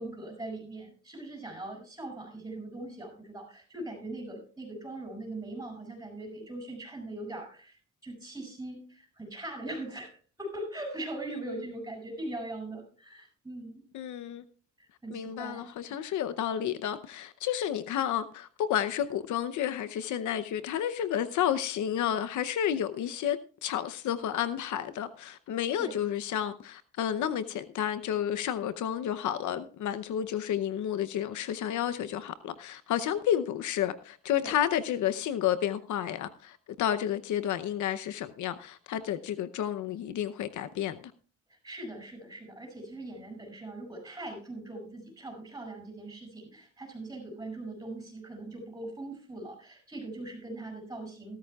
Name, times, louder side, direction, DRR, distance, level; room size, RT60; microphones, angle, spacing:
voice 1, 0.0-7.8 8.0-10.1 10.4-13.8 14.8-15.7 25.8-26.0 34.4-34.5 41.5-51.4, right 2 dB, 10° right, 7.4 m, -41 dB
voice 2, 13.9-14.4 15.1-41.1, left 10 dB, 75° left, 0.8 m, -31 dB
16.0 x 13.5 x 2.4 m
cardioid pair, 90°, 30 cm